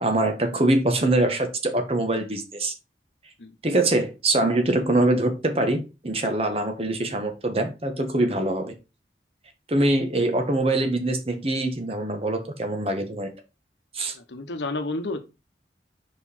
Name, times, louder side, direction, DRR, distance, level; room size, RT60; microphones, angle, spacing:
voice 1, 0.0-2.7 3.6-8.7 9.7-13.3 13.9-14.1, right 2 dB, 35° right, 1.1 m, -23 dB
voice 2, 14.2-15.2, left 2 dB, 85° left, 0.9 m, -30 dB
5.2 x 4.6 x 4.3 m
head